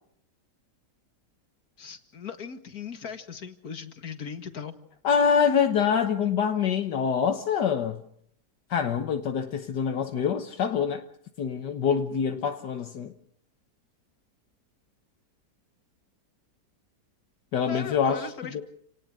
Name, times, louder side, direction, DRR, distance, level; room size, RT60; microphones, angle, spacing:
voice 1, 1.8-4.7 17.6-18.6, left 6 dB, 60° left, 2.3 m, -38 dB
voice 2, 5.0-8.0 8.7-11.0 11.4-13.1 17.5-18.3 18.5-18.6, left 7 dB, 75° left, 1.8 m, -25 dB
29.5 x 18.5 x 6.6 m
omnidirectional pair, 1.8 m